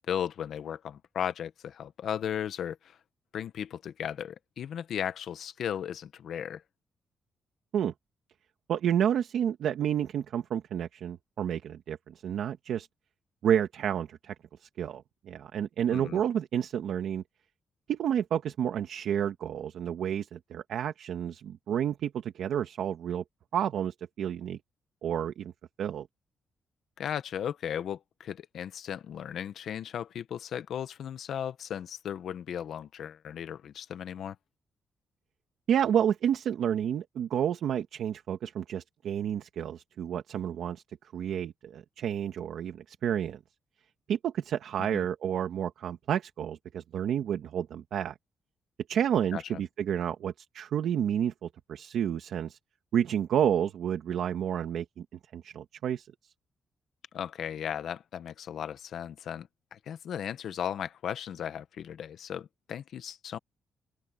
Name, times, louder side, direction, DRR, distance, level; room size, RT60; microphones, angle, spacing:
voice 1, 0.1-3.0 3.3-6.6 15.9-16.2 27.0-34.3 44.8-45.1 49.3-49.6 57.1-63.4, left 9 dB, 65° left, 1.2 m, -36 dB
voice 2, 8.7-12.9 13.4-14.3 14.6-17.2 17.9-23.2 23.5-24.6 25.0-25.5 25.8-26.1 35.7-40.8 41.1-43.4 44.1-48.1 48.9-52.6 52.9-55.1 55.3-56.1, right 9 dB, 70° right, 1.7 m, -30 dB
open air
cardioid pair, 135°, 0 cm